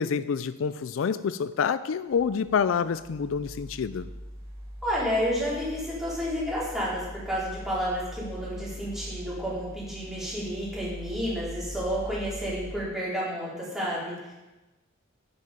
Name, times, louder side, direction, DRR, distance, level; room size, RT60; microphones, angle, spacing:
voice 1, 0.0-4.1, left 6 dB, 80° left, 14 dB, 0.4 m, -27 dB
sound 1, 2.1-12.8, equal, 50° right, 2.7 m, -42 dB
voice 2, 4.8-14.3, equal, ahead, -8 dB, 4.0 m, -30 dB
10.0 x 8.4 x 5.0 m, 1.1 s
head